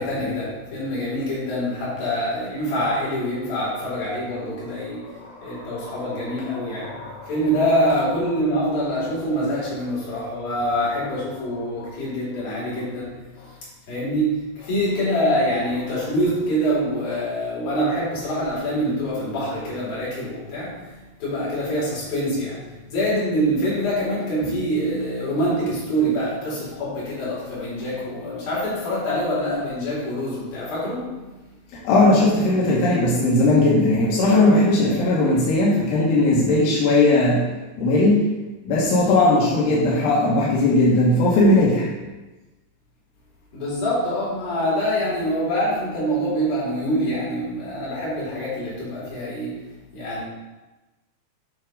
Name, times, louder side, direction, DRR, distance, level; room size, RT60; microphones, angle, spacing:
voice 1, 0.0-13.6 13.9-31.4 43.5-50.2, equal, 60° left, -8 dB, 4.7 m, -25 dB
voice 2, 5.2-6.4 6.8-7.3 11.8-11.9 31.8-37.5 37.8-38.3 38.6-41.9, left 2 dB, 90° left, -6 dB, 3.4 m, -18 dB
10.5 x 3.5 x 5.2 m, 1.1 s
omnidirectional pair, 4.6 m